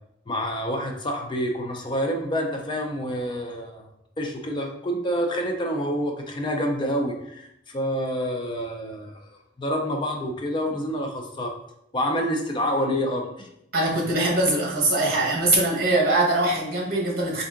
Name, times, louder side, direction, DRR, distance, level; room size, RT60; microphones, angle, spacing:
voice 1, 0.3-3.8 4.2-7.5 7.7-9.1 9.6-11.5 11.9-13.5, equal, 25° left, 2 dB, 0.4 m, -27 dB
voice 2, 13.7-17.4, right 2 dB, 50° right, -3 dB, 1.1 m, -22 dB
3.5 x 2.6 x 3.6 m, 0.79 s
head